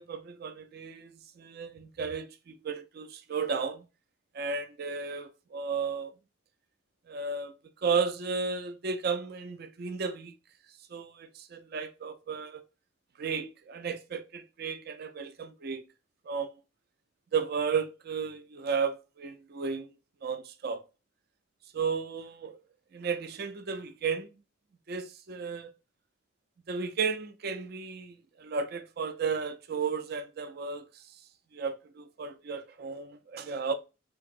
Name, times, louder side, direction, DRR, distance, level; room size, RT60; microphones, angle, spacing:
voice 1, 0.0-3.8 4.3-6.1 7.1-7.5 7.8-10.3 10.9-12.6 13.2-15.8 16.3-16.5 17.3-19.9 20.2-20.8 21.7-22.6 22.9-24.3 24.9-25.7 26.7-31.1 31.5-33.7, right 5 dB, 50° right, 0.4 m, -34 dB
3.5 x 2.9 x 2.4 m
head